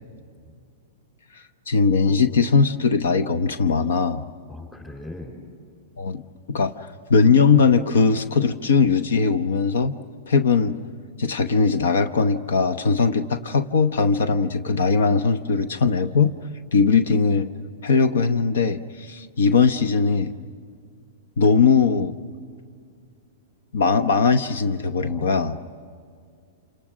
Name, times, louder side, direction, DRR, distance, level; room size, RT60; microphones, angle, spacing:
voice 1, 1.7-4.2 6.0-6.2 6.5-6.7 7.1-10.0 10.3-10.8 11.2-16.3 16.7-17.5 17.8-20.3 21.4-22.1 23.7-25.6, left 5 dB, 85° left, 13 dB, 1.0 m, -20 dB
voice 2, 4.5-5.3 25.0-25.5, left 2 dB, 10° left, 3 dB, 5.2 m, -38 dB
28.5 x 28.0 x 6.3 m, 2.2 s
hypercardioid pair, 155°, 0 cm